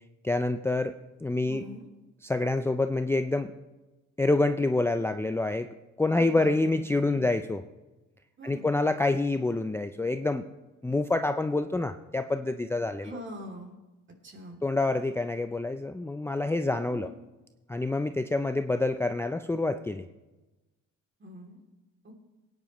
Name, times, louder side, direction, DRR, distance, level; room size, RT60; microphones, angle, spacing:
voice 1, 0.2-0.9 1.2-1.6 2.2-3.5 4.2-5.7 6.0-7.6 8.4-10.4 10.8-13.1 14.6-17.1 17.7-20.0, left 2 dB, 10° left, 7 dB, 0.4 m, -27 dB
voice 2, 1.4-1.9 6.1-7.3 8.4-8.7 13.0-13.7 14.2-14.6 16.6-17.1 21.2-21.6 22.0-22.1, equal, 40° right, 2 dB, 2.8 m, -44 dB
18.5 x 9.8 x 3.1 m, 1.1 s
cardioid pair, 90°, 30 cm